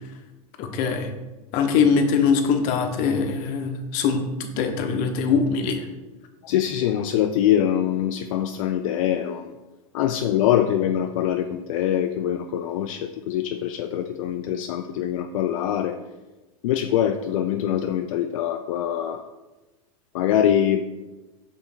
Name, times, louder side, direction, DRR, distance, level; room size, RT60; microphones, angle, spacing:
voice 1, 0.6-1.1 1.5-4.2 4.6-5.9, left 5 dB, 50° left, 6 dB, 0.9 m, -22 dB
voice 2, 6.4-9.5 9.9-16.0 16.6-19.2 20.1-20.8, left 10 dB, 70° left, 7 dB, 0.4 m, -23 dB
5.6 x 4.0 x 4.3 m, 1.2 s
hypercardioid pair, 120°, 18 cm